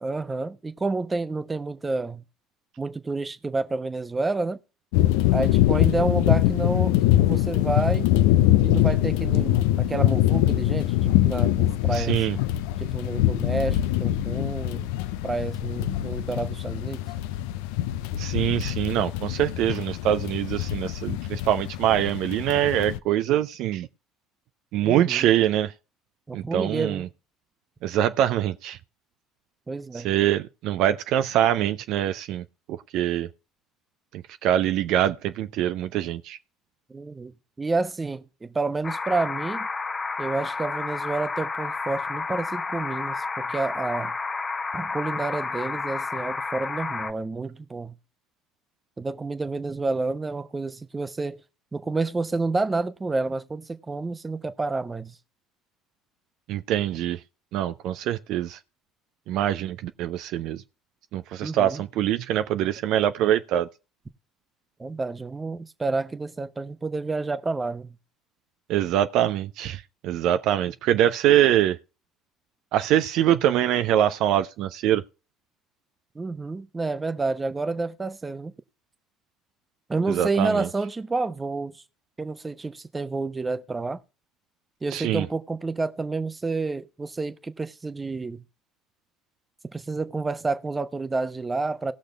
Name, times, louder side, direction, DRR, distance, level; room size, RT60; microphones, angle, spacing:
voice 1, 0.0-2.2 2.8-4.6 5.3-8.1 8.6-12.2 12.8-14.9 15.2-17.0 24.8-25.3 26.3-27.1 29.7-30.1 36.9-37.3 37.6-39.7 40.2-44.2 44.7-48.0 49.0-51.4 51.7-55.2 61.4-61.8 64.8-68.0 76.1-78.5 79.9-81.8 82.2-84.0 84.8-88.4 89.7-91.9, right 3 dB, 20° right, 1.0 m, -29 dB
sound 1, 4.9-23.0, left 14 dB, 70° left, 0.5 m, -23 dB
voice 2, 11.9-12.4 18.2-23.9 24.7-25.7 26.3-27.1 27.8-28.8 29.9-33.3 34.1-36.4 56.5-57.2 57.5-58.6 59.3-60.6 61.1-63.7 68.7-71.8 72.7-75.0 80.1-80.7 84.9-85.3, right 11 dB, 60° right, 0.5 m, -24 dB
sound 2, 38.8-47.1, left 4 dB, 25° left, 1.0 m, -31 dB
18.5 x 6.5 x 3.4 m
hypercardioid pair, 60°, 0 cm